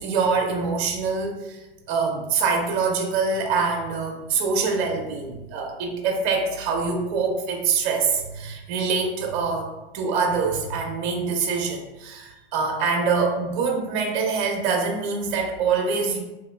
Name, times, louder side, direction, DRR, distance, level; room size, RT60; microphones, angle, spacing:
voice 1, 0.0-1.6 1.9-9.7 9.9-16.2, right 5 dB, 50° right, 1 dB, 0.8 m, -24 dB
3.0 x 2.9 x 3.3 m, 1.1 s
hypercardioid pair, 130°, 31 cm